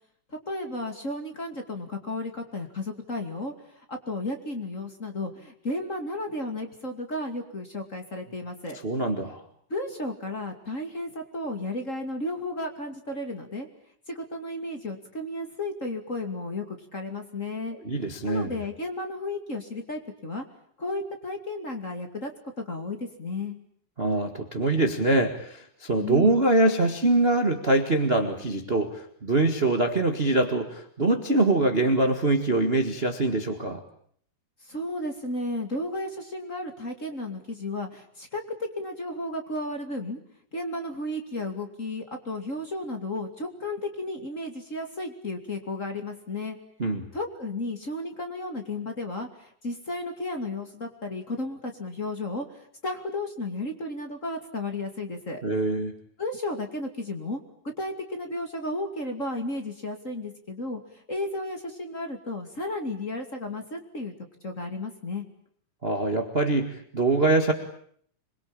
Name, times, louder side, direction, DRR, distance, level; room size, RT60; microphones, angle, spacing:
voice 1, 0.3-8.8 9.7-13.7 14.1-17.8 18.3-20.4 20.8-22.3 22.6-23.6 26.0-26.4 34.6-40.2 40.5-46.6 47.1-55.4 56.2-57.4 57.8-64.1 64.4-65.2, left 2 dB, 25° left, 4 dB, 2.6 m, -33 dB
voice 2, 8.8-9.4 17.8-18.5 24.0-33.8 46.8-47.1 55.4-55.9 65.8-67.5, right 2 dB, 25° right, 5 dB, 1.6 m, -24 dB
26.5 x 22.5 x 8.9 m, 0.63 s
omnidirectional pair, 3.5 m